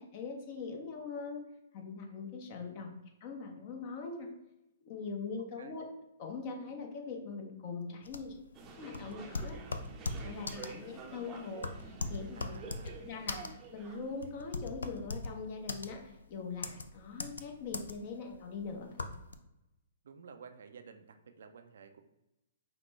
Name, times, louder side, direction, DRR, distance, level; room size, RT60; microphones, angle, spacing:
voice 1, 0.0-1.4 1.7-4.3 4.8-5.8 6.2-8.4 8.8-9.9 10.2-12.6 12.8-19.2, left 4 dB, 45° left, 2 dB, 0.8 m, -42 dB
sound 1, 8.1-19.3, left 3 dB, 80° left, 0.3 m, -40 dB
sound 2, 8.5-14.3, right 4 dB, 25° right, 0.6 m, -49 dB
voice 2, 12.4-13.1 20.0-22.0, right 6 dB, 70° right, 8 dB, 0.4 m, -53 dB
5.1 x 2.1 x 3.1 m, 0.92 s
hypercardioid pair, 120°, 0 cm